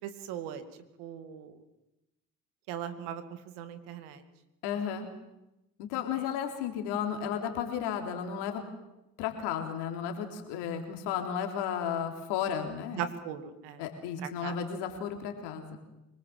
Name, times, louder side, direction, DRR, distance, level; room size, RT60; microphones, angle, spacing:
voice 1, 0.0-0.6 1.0-1.6 2.7-4.2 12.9-13.8 14.2-14.5, right 9 dB, 80° right, 10 dB, 2.3 m, -39 dB
voice 2, 4.6-5.1 5.8-8.6 9.2-13.0 13.8-15.8, left 8 dB, 80° left, 4 dB, 3.5 m, -33 dB
25.0 x 19.0 x 7.7 m, 0.93 s
hypercardioid pair, 55°, 39 cm